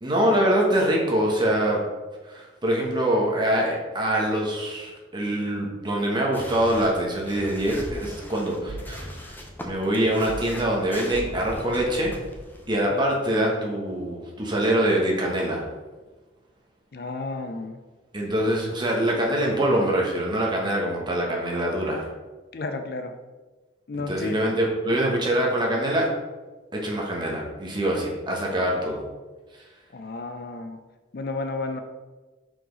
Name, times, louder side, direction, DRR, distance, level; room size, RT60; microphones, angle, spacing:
voice 1, 0.0-1.8 2.3-9.1 9.6-12.1 12.7-15.6 18.1-22.1 24.1-26.1 26.7-29.0, right 1 dB, 25° right, -2 dB, 1.1 m, -24 dB
sound 1, 6.3-12.9, equal, 10° left, 0.7 m, -40 dB
sound 2, 8.7-9.0 10.3-10.6 11.1-11.4 12.0-12.4, right 3 dB, 55° right, 0.4 m, -37 dB
voice 2, 16.9-17.8 22.5-23.1 23.9-24.4 29.9-30.8 31.1-31.8, left 3 dB, 55° left, 7 dB, 0.5 m, -32 dB
5.8 x 5.0 x 3.9 m, 1.3 s
head